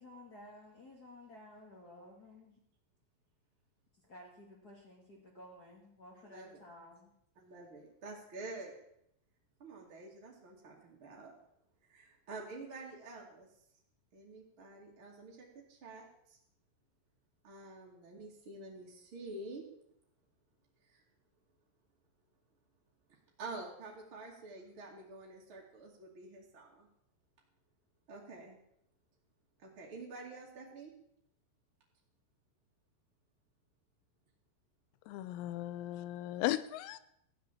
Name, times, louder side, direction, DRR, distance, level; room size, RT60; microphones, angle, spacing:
voice 1, 0.0-2.6 4.0-7.1, left 1 dB, 55° left, -2 dB, 1.0 m, -54 dB
voice 2, 6.2-6.6 7.4-8.8 9.6-11.3 11.9-13.5 14.1-16.4 17.4-19.7 20.9-21.0 23.4-26.9 28.1-28.6 29.6-30.9, right 2 dB, 35° right, -2 dB, 2.3 m, -48 dB
voice 3, 35.1-37.0, left 14 dB, 85° left, 15 dB, 3.5 m, -36 dB
15.5 x 10.5 x 7.5 m, 0.75 s
omnidirectional pair, 6.0 m